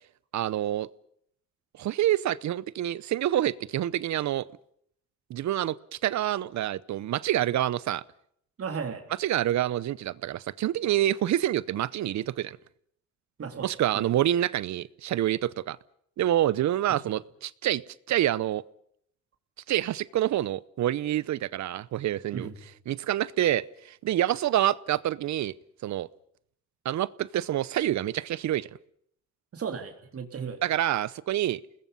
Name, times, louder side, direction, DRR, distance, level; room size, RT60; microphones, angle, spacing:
voice 1, 0.3-0.9 1.8-4.4 5.3-5.8 6.0-8.0 9.2-12.6 13.6-15.8 16.2-17.8 18.1-18.6 19.7-22.5 22.9-25.5 25.8-26.1 26.8-28.7 30.6-31.6, right 12 dB, 65° right, 20 dB, 0.8 m, -27 dB
voice 2, 8.6-9.0 13.4-14.1 16.9-17.2 22.3-22.6 29.5-30.6, right 6 dB, 50° right, 5 dB, 3.6 m, -36 dB
29.5 x 20.5 x 5.6 m, 0.68 s
cardioid pair, 90°, 30 cm